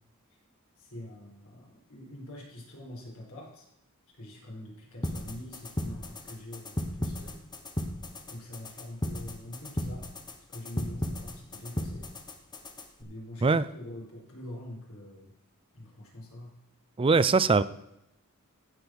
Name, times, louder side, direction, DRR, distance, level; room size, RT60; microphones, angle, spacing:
voice 1, 0.8-3.7 4.1-7.4 8.3-10.1 10.5-12.1 13.0-15.3 15.7-16.5, left 1 dB, 70° left, -2 dB, 4.4 m, -44 dB
sound 1, 5.0-13.0, left 1 dB, 20° left, 1.0 m, -36 dB
voice 2, 17.0-17.6, right 4 dB, 25° right, 16 dB, 0.4 m, -22 dB
15.5 x 5.3 x 6.0 m, 0.82 s
head